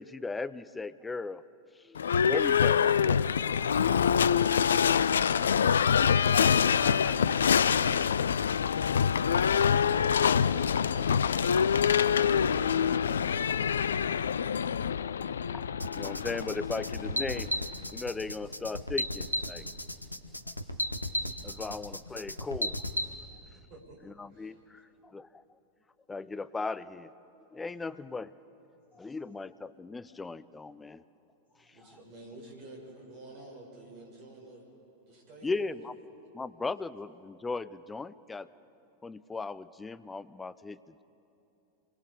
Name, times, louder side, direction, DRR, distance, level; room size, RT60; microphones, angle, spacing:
voice 1, 0.0-1.4 1.8-2.0 2.2-3.2 6.7-8.3 15.5-15.7 15.9-17.5 17.9-19.7 21.4-22.8 24.0-25.4 26.1-27.1 27.5-28.3 28.9-31.0 31.6-31.8 35.4-35.9 36.3-38.5 39.0-41.0, left 3 dB, 10° left, 16 dB, 0.5 m, -38 dB
Livestock farm animals working animals / Bell, 2.0-17.8, left 7 dB, 65° left, 0.4 m, -25 dB
sound 1, 15.8-23.1, equal, 85° left, 1.0 m, -34 dB
voice 2, 21.1-21.6 31.6-31.7, right 5 dB, 80° right, -5 dB, 4.0 m, -66 dB
voice 3, 23.5-24.0 24.2-24.6 31.7-34.6 35.0-35.9, right 2 dB, 40° right, -2 dB, 7.2 m, -49 dB
27.5 x 22.0 x 5.0 m, 2.9 s
figure-of-eight pair, 90°, 0 cm